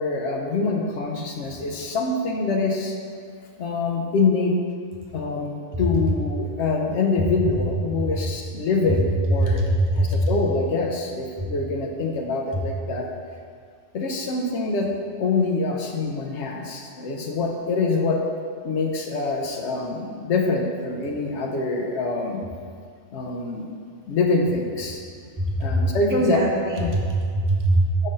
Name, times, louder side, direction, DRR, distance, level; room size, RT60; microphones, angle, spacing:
voice 1, 0.0-3.0 3.6-4.6 5.1-9.7 9.9-13.1 13.9-14.9 15.2-18.2 18.6-22.4 23.1-23.7 24.1-25.0 25.6-26.4 26.8-26.9 28.0-28.1, left 3 dB, 70° left, 2 dB, 0.9 m, -25 dB
voice 2, 9.4-10.2 25.4-25.8 26.1-27.9, right 1 dB, 20° right, -1 dB, 0.5 m, -22 dB
5.0 x 3.8 x 5.3 m, 2.2 s
omnidirectional pair, 1.3 m